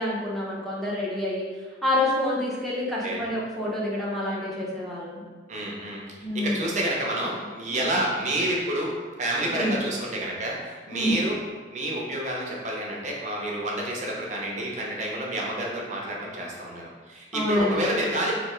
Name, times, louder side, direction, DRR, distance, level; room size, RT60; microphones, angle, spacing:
voice 1, 0.0-1.5 1.8-5.2 6.2-6.7 7.7-8.0 9.4-9.8 10.9-11.3 17.3-17.9, left 1 dB, ahead, -7 dB, 0.8 m, -27 dB
voice 2, 5.5-6.0 6.3-11.4 11.7-18.3, right 1 dB, 40° right, -2 dB, 0.7 m, -29 dB
3.1 x 2.8 x 4.2 m, 1.4 s
head